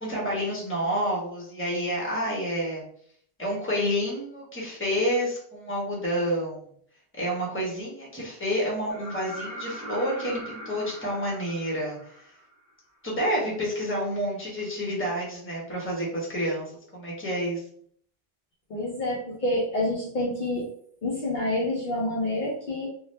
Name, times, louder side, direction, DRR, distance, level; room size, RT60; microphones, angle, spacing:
voice 1, 0.0-2.9 3.4-6.6 7.2-12.3 13.0-17.6, equal, 15° left, -4 dB, 1.0 m, -29 dB
sound 1, 8.9-12.7 14.6-14.7, right 1 dB, 20° right, 1.2 m, -41 dB
voice 2, 18.7-20.6 21.0-22.9, left 1 dB, 55° left, -5 dB, 0.8 m, -28 dB
2.7 x 2.3 x 3.3 m, 0.63 s
omnidirectional pair, 1.0 m